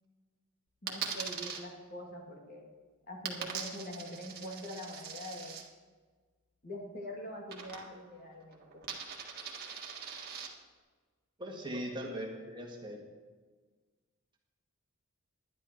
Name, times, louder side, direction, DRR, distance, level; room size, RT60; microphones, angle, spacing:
voice 1, 0.8-2.7 3.1-5.6 6.6-8.7 11.7-11.9, equal, 40° left, -1 dB, 2.3 m, -44 dB
Coin (dropping), 0.9-1.6 3.3-5.6 7.5-8.1 8.4-10.5, right 7 dB, 45° right, 1.6 m, -41 dB
voice 2, 11.4-13.0, equal, 20° right, -1 dB, 1.7 m, -40 dB
11.0 x 11.0 x 4.5 m, 1.4 s
head